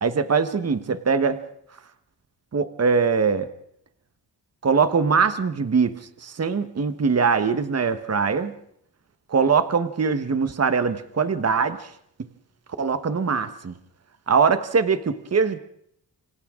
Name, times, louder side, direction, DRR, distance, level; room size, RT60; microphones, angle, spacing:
voice 1, 0.0-1.4 2.5-3.5 4.6-8.5 9.3-11.9 12.8-13.7 14.3-15.6, right 5 dB, 40° right, 10 dB, 1.3 m, -22 dB
28.0 x 25.5 x 3.8 m, 0.71 s
wide cardioid pair, 100°, 40 cm